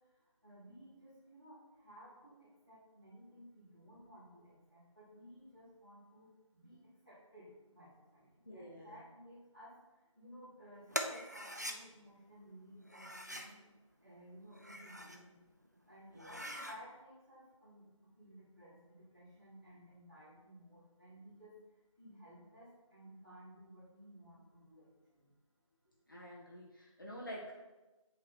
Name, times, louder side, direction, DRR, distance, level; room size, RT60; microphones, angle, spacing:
voice 1, 0.4-6.3 6.5-6.8 7.0-9.7 10.1-13.6 14.0-15.4 15.9-17.8 18.1-21.5 22.0-24.9 25.1-25.2, equal, ahead, -23 dB, 1.4 m, -57 dB
voice 2, 8.4-9.0 16.1-16.5 26.1-27.5, equal, 40° left, -3 dB, 0.7 m, -49 dB
sound 1, 10.9-11.8 12.9-13.5 14.4-15.2 15.6-15.7 16.1-16.8, equal, 30° right, 0.3 m, -42 dB
7.6 x 3.0 x 4.2 m, 1.1 s
figure-of-eight pair, 175°, 17 cm